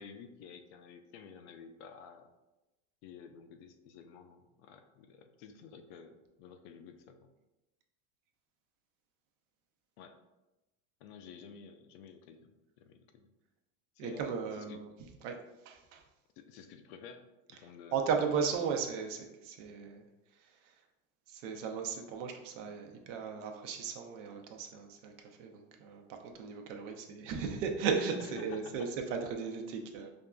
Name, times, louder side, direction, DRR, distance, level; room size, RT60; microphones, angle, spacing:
voice 1, 0.0-2.3 3.0-7.3 10.0-10.2 11.0-13.3 14.0-14.8 16.4-18.1 26.9-27.0 28.2-28.9, left 6 dB, 60° left, 7 dB, 0.5 m, -52 dB
voice 2, 14.0-14.9 15.2-15.4 15.7-16.0 17.9-20.0 21.3-25.1 25.4-30.1, right 6 dB, 70° right, 4 dB, 0.7 m, -36 dB
5.2 x 2.5 x 2.2 m, 1.0 s
supercardioid pair, 145°, 39 cm